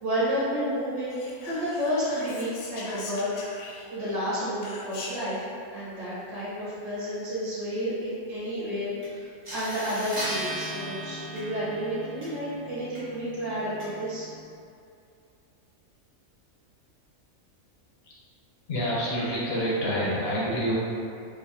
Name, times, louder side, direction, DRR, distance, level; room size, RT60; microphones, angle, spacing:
voice 1, 0.0-1.1 1.4-3.3 3.9-14.3, equal, 65° right, -13 dB, 1.4 m, -31 dB
Whispering, 1.1-4.1 4.6-5.4, left 3 dB, 80° left, 1.0 m, -41 dB
sound 1, 9.0-9.1 9.4-14.4, equal, 25° right, 0.8 m, -37 dB
voice 2, 18.7-20.7, equal, 55° left, -6 dB, 0.8 m, -27 dB
4.2 x 2.4 x 2.7 m, 2.5 s
omnidirectional pair, 1.5 m